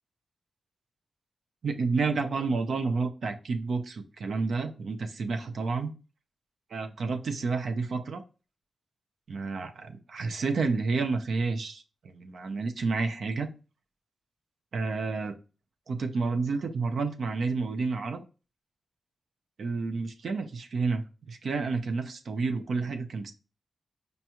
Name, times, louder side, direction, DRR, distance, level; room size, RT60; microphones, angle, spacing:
voice 1, 1.6-5.9 6.7-8.2 9.3-13.5 14.7-15.4 15.9-18.2 19.6-21.0 21.3-23.3, right 4 dB, 65° right, 8 dB, 0.5 m, -30 dB
5.2 x 2.3 x 2.9 m, 0.33 s
wide cardioid pair, 150°, 0 cm